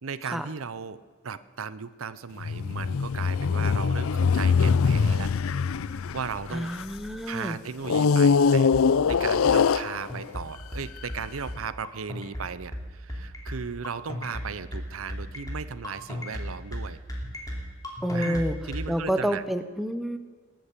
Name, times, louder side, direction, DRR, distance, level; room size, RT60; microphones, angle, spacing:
voice 1, 0.0-5.3 5.9-6.7 7.3-17.0 18.1-19.4, right 6 dB, 85° right, 16 dB, 0.7 m, -36 dB
sound 1, 2.4-7.1 7.8-10.4 11.1-11.2, left 5 dB, 85° left, 0.5 m, -23 dB
voice 2, 6.5-7.6 18.0-18.6 18.9-20.2, equal, ahead, 9 dB, 0.8 m, -28 dB
sound 2, 8.7-18.9, equal, 15° left, 2.8 m, -35 dB
19.5 x 9.0 x 8.3 m, 1.4 s
head